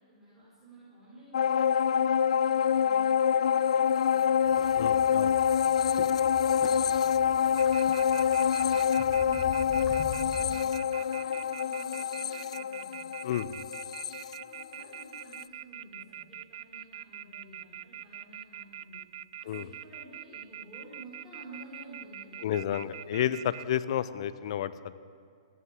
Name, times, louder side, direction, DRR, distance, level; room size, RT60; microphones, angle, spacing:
voice 1, 0.0-4.7 6.0-13.1 14.3-19.0 19.4-23.5, right 1 dB, 10° right, -8 dB, 4.7 m, -52 dB
sound 1, 1.3-15.0 15.4-15.5, left 8 dB, 75° left, 0.3 m, -26 dB
sound 2, 4.4-10.6, left 6 dB, 10° left, 1.3 m, -44 dB
voice 2, 4.7-5.4 13.2-13.5 19.5-19.6 22.4-24.7, left 11 dB, 55° left, 15 dB, 0.7 m, -31 dB
sound 3, 7.6-23.8, right 11 dB, 55° right, 0.3 m, -43 dB
15.0 x 10.0 x 9.6 m, 2.3 s
hypercardioid pair, 145°, 3 cm